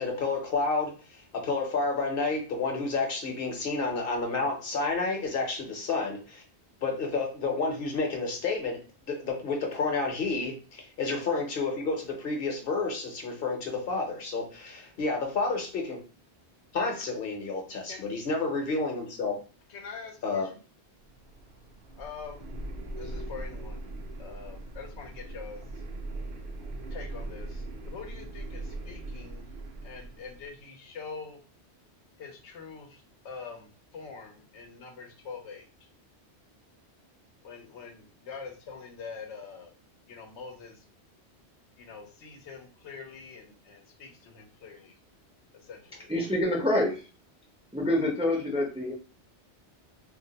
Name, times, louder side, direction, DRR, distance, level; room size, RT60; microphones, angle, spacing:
voice 1, 0.0-6.4 6.8-16.0 16.7-19.4 20.2-20.5, left 3 dB, 60° left, 2 dB, 1.0 m, -30 dB
voice 2, 19.7-20.6 22.0-22.5 23.0-23.9 24.2-25.8 26.9-29.5 29.8-31.4 32.2-35.9 37.4-39.7 40.1-40.8 41.8-44.9 45.5-46.1, left 5 dB, 90° left, 4 dB, 0.9 m, -44 dB
sound 1, 20.9-30.5, right 2 dB, 60° right, 0.7 m, -40 dB
voice 3, 46.1-47.0 47.7-48.9, left 1 dB, 10° right, -1 dB, 0.4 m, -26 dB
2.5 x 2.0 x 3.9 m, 0.36 s
omnidirectional pair, 1.1 m